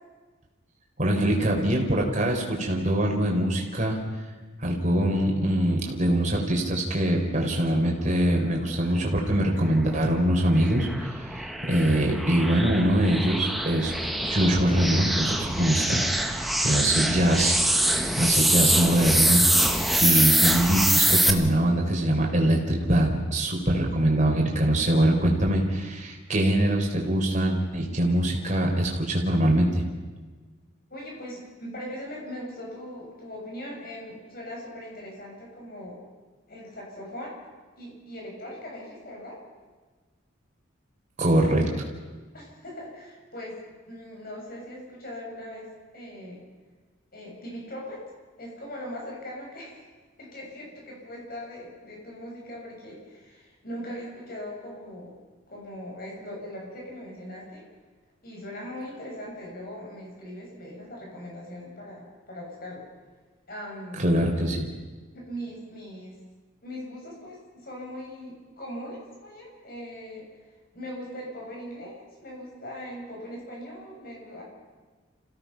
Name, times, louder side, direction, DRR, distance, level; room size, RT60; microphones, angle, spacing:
voice 1, 1.0-4.0 4.6-13.9 14.2-17.6 18.2-29.9 41.2-41.7 64.0-64.7, right 1 dB, 35° right, 0 dB, 3.9 m, -23 dB
sound 1, 9.8-21.3, right 1 dB, ahead, 1.2 m, -24 dB
voice 2, 30.9-36.0 36.5-37.4 37.8-39.4 42.3-43.6 43.9-46.4 47.1-48.0 48.4-49.9 50.2-55.2 55.5-57.7 58.2-62.8 63.5-64.0 65.1-66.2 66.6-70.3 70.7-74.4, equal, 45° left, -2 dB, 7.2 m, -40 dB
27.5 x 17.0 x 5.9 m, 1.4 s
head